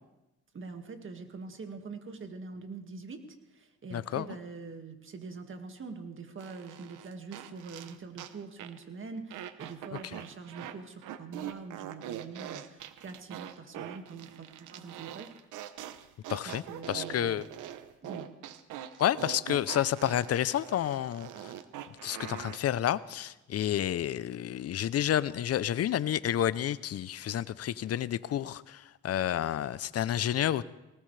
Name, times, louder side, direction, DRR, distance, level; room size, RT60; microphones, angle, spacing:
voice 1, 0.5-15.3 16.4-17.5 18.0-18.3, right 4 dB, 40° right, 5 dB, 2.0 m, -44 dB
voice 2, 3.9-4.3 16.3-17.5 19.0-21.5 21.9-30.6, left 11 dB, 55° left, 17 dB, 0.6 m, -30 dB
sound 1, 6.4-8.3 8.6-8.8 9.3-10.8 11.0-22.6, right 11 dB, 90° right, 0.9 m, -43 dB
19.5 x 18.5 x 3.3 m, 0.96 s
cardioid pair, 90°, 30 cm